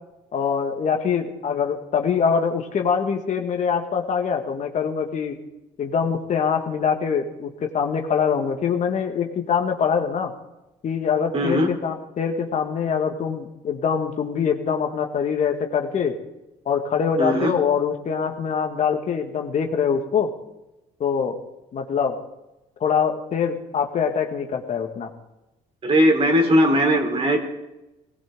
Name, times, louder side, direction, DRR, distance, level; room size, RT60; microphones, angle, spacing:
voice 1, 0.3-5.4 5.8-10.3 10.8-16.2 16.7-20.3 21.0-21.4 21.7-22.2 22.8-25.1, left 6 dB, 55° left, 4 dB, 2.0 m, -24 dB
voice 2, 11.3-11.7 17.2-17.5 25.8-27.4, equal, 40° right, 3 dB, 3.8 m, -19 dB
19.0 x 17.0 x 3.9 m, 0.96 s
supercardioid pair, 70°, 15 cm